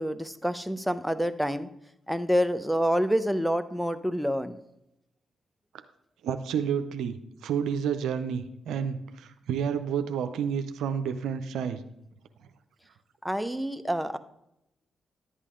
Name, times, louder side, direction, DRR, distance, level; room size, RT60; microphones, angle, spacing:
voice 1, 0.0-1.7 2.1-4.6 13.2-14.2, equal, 5° right, 10 dB, 0.8 m, -27 dB
voice 2, 6.2-7.2 7.4-11.8, right 7 dB, 80° right, 9 dB, 0.6 m, -30 dB
11.0 x 8.2 x 3.7 m, 0.82 s
hypercardioid pair, 40°, 0 cm